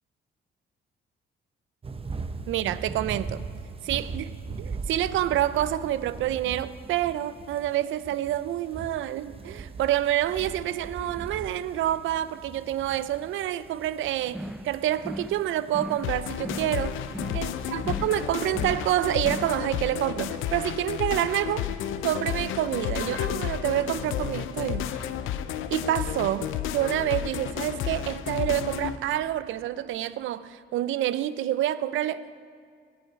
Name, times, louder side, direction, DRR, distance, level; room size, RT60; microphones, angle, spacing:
sound 1, 1.8-18.7, right 4 dB, 30° right, 0.8 m, -40 dB
voice 1, 2.5-3.5 3.8-4.3 4.6-17.0 17.3-21.7 22.0-25.1 25.7-32.4, right 12 dB, 80° right, 0.5 m, -28 dB
sound 2, 14.3-14.7 15.0-15.4 15.7-16.1 16.4-16.8 17.1-17.5 17.8-18.2 18.5-18.9 19.2-19.6, equal, 5° right, 0.4 m, -37 dB
sound 3, 16.0-29.0, left 10 dB, 90° left, 0.6 m, -32 dB
17.5 x 9.0 x 4.7 m
cardioid pair, 90°, 20 cm